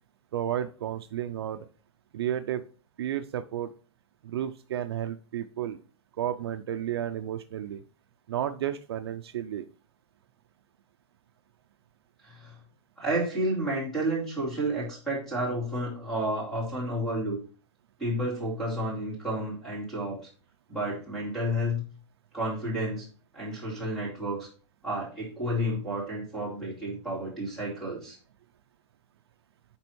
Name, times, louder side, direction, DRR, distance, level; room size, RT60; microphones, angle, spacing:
voice 1, 0.3-1.7 2.1-2.6 3.0-3.7 4.2-5.8 6.2-7.8 8.3-9.7, right 10 dB, 55° right, 9 dB, 0.5 m, -32 dB
voice 2, 12.2-12.6 13.0-17.4 18.0-20.2 20.7-21.8 22.3-23.1 23.3-24.5 24.8-28.2, right 1 dB, 5° left, -5 dB, 2.6 m, -31 dB
9.7 x 3.5 x 4.5 m, 0.38 s
supercardioid pair, 180°, 16 cm